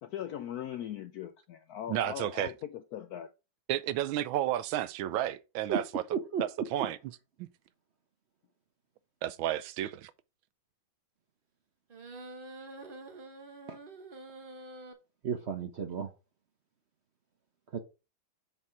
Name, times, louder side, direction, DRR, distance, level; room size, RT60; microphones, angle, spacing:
voice 1, 0.0-3.3, left 10 dB, 80° left, 0.8 m, -40 dB
voice 2, 1.9-2.5 3.7-6.0 6.4-7.0 7.4-7.5 9.2-10.1, right 13 dB, 90° right, 1.4 m, -32 dB
voice 3, 6.1-6.4 13.7-13.8 15.2-16.1 17.7-17.8, right 7 dB, 60° right, 0.7 m, -33 dB
sound 1, 11.9-14.9, right 2 dB, 35° right, 0.9 m, -47 dB
7.1 x 4.4 x 4.7 m
omnidirectional pair, 2.1 m